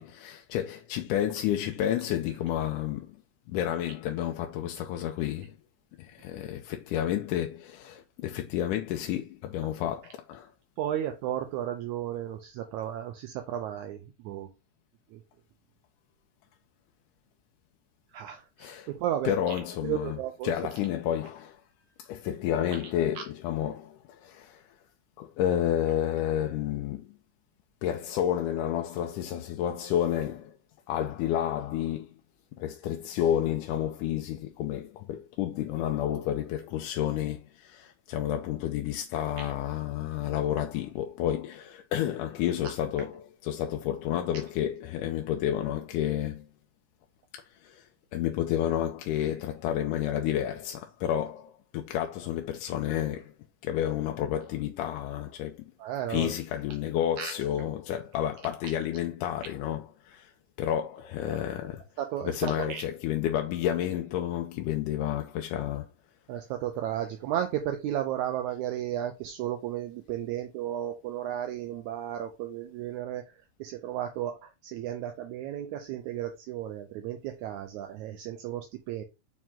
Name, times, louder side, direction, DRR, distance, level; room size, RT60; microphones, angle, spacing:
voice 1, 0.0-3.2 3.5-5.6 6.0-10.5 18.6-18.9 19.2-21.6 22.0-24.7 25.2-27.2 27.8-30.6 30.9-32.1 32.6-46.5 47.3-53.3 53.6-55.7 56.1-60.3 60.6-61.8 62.2-65.9, left 11 dB, 85° left, 2.1 m, -30 dB
voice 2, 10.8-14.0 14.3-14.5 18.1-19.3 19.8-20.5 55.8-56.3 57.2-57.3 62.0-62.3 62.7-62.8 66.3-73.2 73.6-74.4 74.7-79.0, right 11 dB, 75° right, 1.9 m, -33 dB
5.9 x 4.6 x 3.6 m
omnidirectional pair, 3.6 m